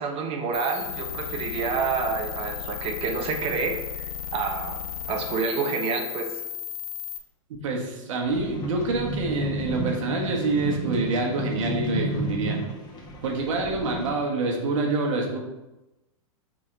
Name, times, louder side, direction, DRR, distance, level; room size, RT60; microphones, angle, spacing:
voice 1, 0.0-6.3, right 5 dB, 35° right, 5 dB, 0.9 m, -28 dB
sound 1, 0.5-7.2, left 10 dB, 85° left, 0.8 m, -34 dB
voice 2, 7.6-12.6 13.2-15.4, right 3 dB, 65° right, 1 dB, 1.6 m, -26 dB
sound 2, 8.3-14.1, right 1 dB, 25° left, 1.6 m, -32 dB
6.0 x 4.5 x 3.9 m, 0.99 s
hypercardioid pair, 115°, 17 cm